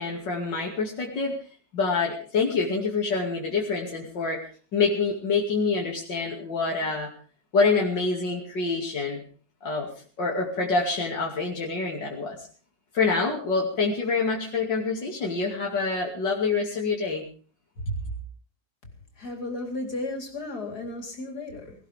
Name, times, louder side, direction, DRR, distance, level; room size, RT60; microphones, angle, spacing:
voice 1, 0.0-1.4 1.7-7.1 7.5-9.2 9.6-9.9 10.2-12.5 12.9-17.2 17.9-18.0, left 4 dB, 90° left, -2 dB, 3.2 m, -26 dB
voice 2, 19.2-21.7, left 2 dB, 60° left, 2 dB, 4.5 m, -34 dB
19.5 x 19.0 x 3.6 m, 0.41 s
omnidirectional pair, 1.9 m